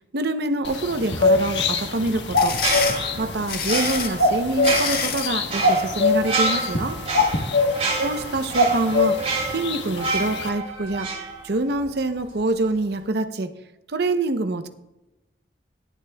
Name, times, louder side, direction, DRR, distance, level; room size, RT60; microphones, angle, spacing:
voice 1, 0.1-2.6 3.2-7.0 8.0-11.1 11.4-13.5 13.9-14.7, right 2 dB, 65° right, 9 dB, 0.7 m, -25 dB
sound 1, 0.6-10.5, left 2 dB, 85° left, 1.2 m, -24 dB
sound 2, 2.1-5.4, left 7 dB, 60° left, 1.6 m, -27 dB
sound 3, 2.5-11.9 12.2-12.4, right 3 dB, 35° right, 3.0 m, -29 dB
17.5 x 10.5 x 2.3 m, 0.99 s
head